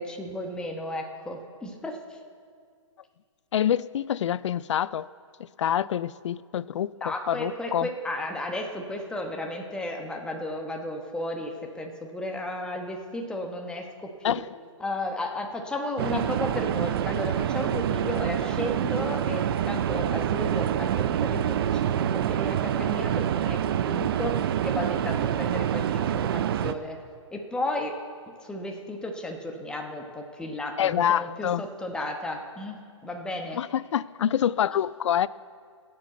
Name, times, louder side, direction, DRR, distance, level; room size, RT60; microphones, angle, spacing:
voice 1, 0.0-2.0 7.0-14.4 14.8-27.0 27.3-28.0 28.4-33.6, left 1 dB, 5° left, 1.1 m, -34 dB
voice 2, 3.5-5.1 5.6-7.9 14.2-14.5 30.8-31.6 33.5-35.3, left 10 dB, 65° left, 0.4 m, -26 dB
sound 1, 16.0-26.7, right 10 dB, 45° right, 0.6 m, -26 dB
17.0 x 7.6 x 7.8 m
hypercardioid pair, 140°, 17 cm